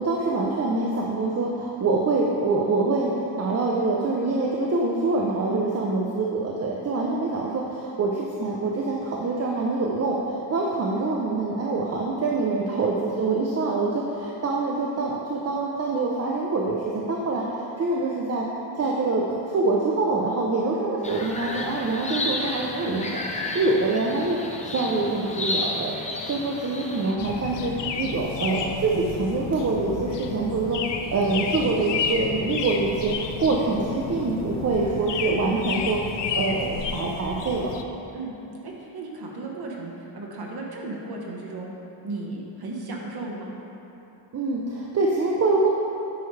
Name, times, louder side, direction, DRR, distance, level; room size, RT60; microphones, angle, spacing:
voice 1, 0.0-18.5 18.8-23.1 23.5-25.9 26.2-27.7 28.0-30.8 31.1-36.0 36.3-37.7 44.3-45.7, right 3 dB, 35° right, -2 dB, 0.5 m, -25 dB
voice 2, 5.5-6.0 20.6-20.8 27.7-27.8 33.5-33.6 38.1-38.3 38.6-41.7 42.0-43.5, right 2 dB, 50° right, -2 dB, 1.2 m, -35 dB
sound 1, 21.0-27.1, left 2 dB, 15° left, 0.5 m, -32 dB
sound 2, 27.2-37.8, left 6 dB, 60° left, 0.6 m, -31 dB
9.3 x 5.9 x 3.2 m, 3.0 s
wide cardioid pair, 140°, 48 cm